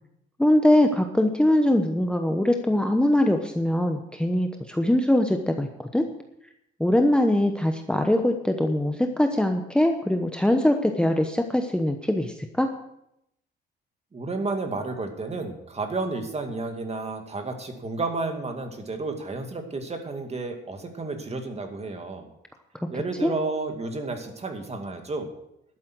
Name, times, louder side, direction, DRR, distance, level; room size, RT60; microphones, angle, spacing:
voice 1, 0.4-6.1 6.8-12.7 23.2-23.3, left 1 dB, 5° left, 5 dB, 1.0 m, -22 dB
voice 2, 14.1-22.3 22.9-25.3, right 3 dB, 30° right, 5 dB, 2.3 m, -31 dB
12.0 x 8.6 x 6.2 m, 0.81 s
cardioid pair, 90°, 20 cm